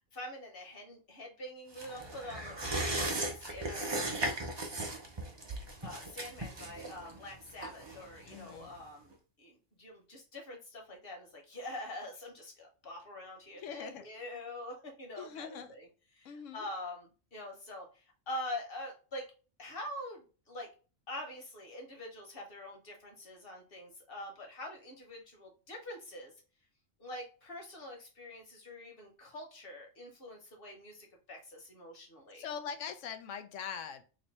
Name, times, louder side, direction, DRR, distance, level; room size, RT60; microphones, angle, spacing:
voice 1, 0.1-4.2 5.8-9.1 9.4-15.9 16.1-19.3 19.6-20.7 21.1-26.3 27.0-32.4, left 1 dB, 50° left, 1 dB, 1.3 m, -45 dB
sound 1, 1.7-8.8 9.1-9.2, right 1 dB, 25° right, 0.7 m, -37 dB
voice 2, 8.3-8.7 13.5-14.1 15.2-15.7 16.2-16.7 32.3-34.0, left 7 dB, 85° left, 8 dB, 1.0 m, -42 dB
3.1 x 2.7 x 4.1 m, 0.35 s
omnidirectional pair, 1.3 m